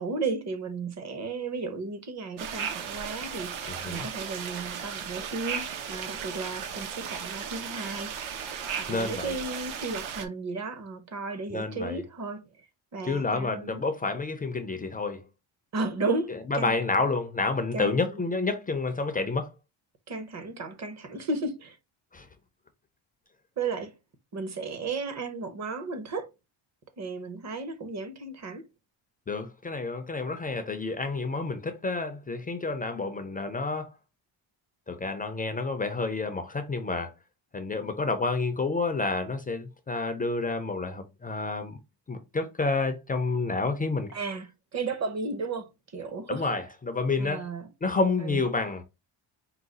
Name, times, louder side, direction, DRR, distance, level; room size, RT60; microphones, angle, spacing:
voice 1, 0.0-8.1 8.8-12.4 12.9-13.8 15.7-16.8 17.7-18.3 20.1-21.8 23.6-23.9 24.3-26.3 27.0-28.6 44.1-46.5 47.2-47.7 48.2-48.4, right 3 dB, 35° right, 0.7 m, -34 dB
sound 1, 2.4-10.3, right 7 dB, 80° right, 0.9 m, -36 dB
voice 2, 3.7-4.1 8.9-9.3 11.5-12.0 13.0-15.2 16.5-19.5 22.1-22.2 29.3-33.9 34.9-37.1 37.5-41.8 42.1-44.1 46.3-47.4 47.8-48.8, left 3 dB, 20° left, 0.3 m, -29 dB
4.7 x 2.3 x 3.8 m
cardioid pair, 155°, 47 cm